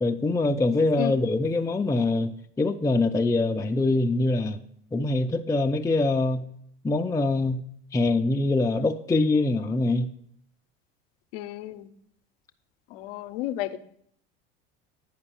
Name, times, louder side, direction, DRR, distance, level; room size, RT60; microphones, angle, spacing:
voice 1, 0.0-4.6 4.9-6.5 6.8-7.6 7.9-10.1, left 2 dB, 10° left, 0.5 m, -24 dB
voice 2, 11.3-11.9 12.9-13.8, left 14 dB, 75° left, 0.8 m, -32 dB
9.8 x 5.2 x 7.0 m
supercardioid pair, 90°, 29 cm